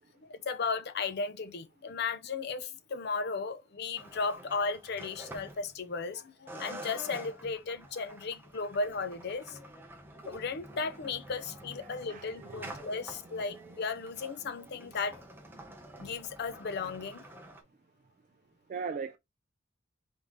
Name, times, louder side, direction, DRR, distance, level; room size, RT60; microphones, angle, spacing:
voice 1, 0.2-9.6 10.2-15.2 16.0-17.2, left 4 dB, 55° left, 0.5 m, -35 dB
sound 1, 4.0-6.1 6.5-17.6, right 1 dB, 10° right, 0.7 m, -48 dB
voice 2, 11.8-12.8 13.3-13.4 18.7-19.2, right 5 dB, 40° right, 0.3 m, -39 dB
3.9 x 3.6 x 3.0 m
head